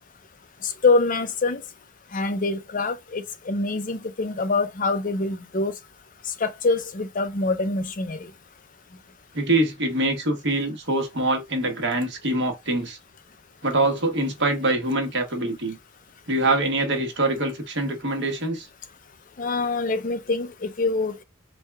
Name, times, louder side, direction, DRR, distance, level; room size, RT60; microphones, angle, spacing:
voice 1, 0.8-1.6 2.1-5.7 6.4-8.2 19.4-21.2, left 3 dB, 40° left, 0.5 m, -25 dB
voice 2, 9.3-13.0 13.6-15.8 16.3-18.7, right 2 dB, 55° right, 1.3 m, -24 dB
4.6 x 2.3 x 3.3 m
head